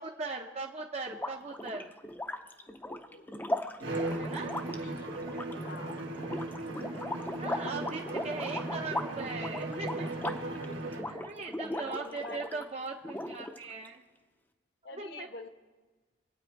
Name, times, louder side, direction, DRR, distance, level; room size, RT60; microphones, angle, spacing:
voice 1, 0.0-1.9 4.2-4.5 7.4-10.1 11.0-14.0 14.9-15.3, right 3 dB, 35° right, 1 dB, 0.7 m, -39 dB
sound 1, 1.1-12.7 13.0-13.9, left 1 dB, 10° left, 0.6 m, -38 dB
voice 2, 2.9-3.5 4.0-5.3 5.6-6.0 8.0-8.1 10.3-11.0 11.5-12.5 14.8-15.5, left 2 dB, 55° left, 7 dB, 1.0 m, -48 dB
Bowed string instrument, 3.8-11.2, right 2 dB, 80° right, 1.6 m, -37 dB
25.0 x 8.9 x 4.6 m, 1.3 s
head